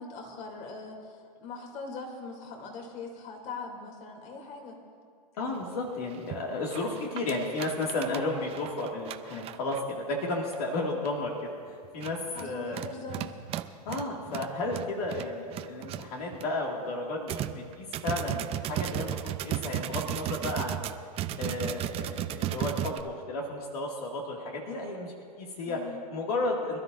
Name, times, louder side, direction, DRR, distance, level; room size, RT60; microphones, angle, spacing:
voice 1, 0.0-4.8 12.3-13.4 25.6-26.0, left 3 dB, 40° left, 1 dB, 3.0 m, -41 dB
voice 2, 5.4-12.8 13.9-20.8 21.4-25.8 26.1-26.8, left 2 dB, 65° left, -1 dB, 2.3 m, -33 dB
sound 1, 5.6-5.7 6.1-6.4 6.7-9.9 10.5-10.6 11.1-11.3 11.8-16.5 16.8-16.9 17.3-23.0, right 12 dB, 30° right, 0.7 m, -35 dB
26.0 x 12.5 x 2.7 m, 2.2 s
hypercardioid pair, 125°, 20 cm